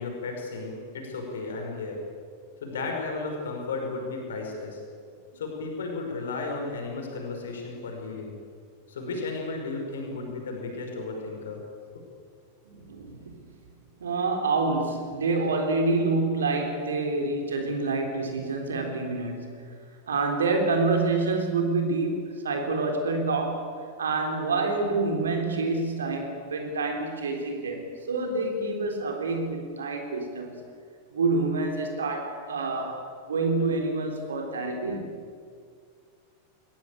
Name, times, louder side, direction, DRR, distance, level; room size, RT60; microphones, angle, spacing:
voice 1, 0.0-2.0 2.6-4.8 5.3-8.4 8.9-11.6 11.9-12.1, left 3 dB, 65° left, 2 dB, 5.6 m, -34 dB
voice 2, 12.7-13.4 14.0-19.6 20.1-23.7 24.0-30.6 31.1-35.1, right 3 dB, 70° right, 4 dB, 3.6 m, -27 dB
22.0 x 21.0 x 8.5 m, 2.1 s
figure-of-eight pair, 90°, 0 cm